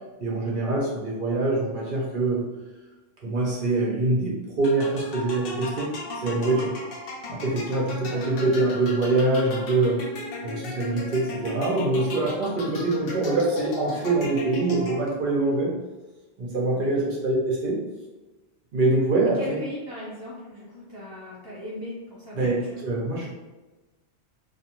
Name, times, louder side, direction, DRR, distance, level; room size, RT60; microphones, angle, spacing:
voice 1, 0.2-2.4 3.2-6.7 7.3-10.0 10.4-15.7 16.4-17.8 18.7-19.6 22.4-23.3, right 2 dB, 55° right, -4 dB, 0.7 m, -24 dB
sound 1, 4.6-15.3, left 2 dB, 65° left, 0.7 m, -36 dB
voice 2, 8.0-8.4 16.7-17.1 19.2-22.8, left 1 dB, 30° left, -8 dB, 0.4 m, -39 dB
2.4 x 2.2 x 2.8 m, 1.1 s
omnidirectional pair, 1.1 m